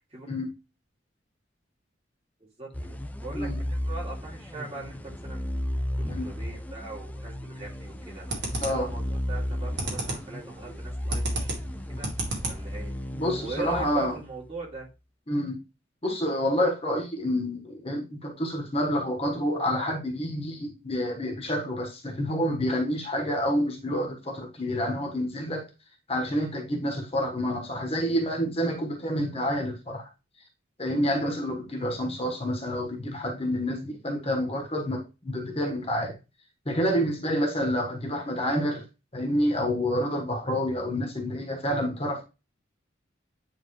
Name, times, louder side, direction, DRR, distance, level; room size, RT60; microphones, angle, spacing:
voice 1, 2.4-5.5 6.0-8.3 8.7-9.0 9.3-11.5 11.9-12.1 12.4-12.9 13.4-14.9, right 3 dB, 30° right, -3 dB, 2.5 m, -40 dB
sound 1, 2.7-14.6, left 1 dB, 10° left, 0.4 m, -34 dB
sound 2, 7.6-7.9 8.3-8.9 9.4-10.3 10.6-12.9, right 3 dB, 60° right, 2.0 m, -32 dB
voice 2, 8.6-8.9 13.1-14.2 15.3-15.6 16.0-25.7 26.1-30.1 30.8-36.1 36.6-38.8 39.1-42.2, equal, 30° left, 2 dB, 1.4 m, -28 dB
9.5 x 3.6 x 3.2 m, 0.27 s
head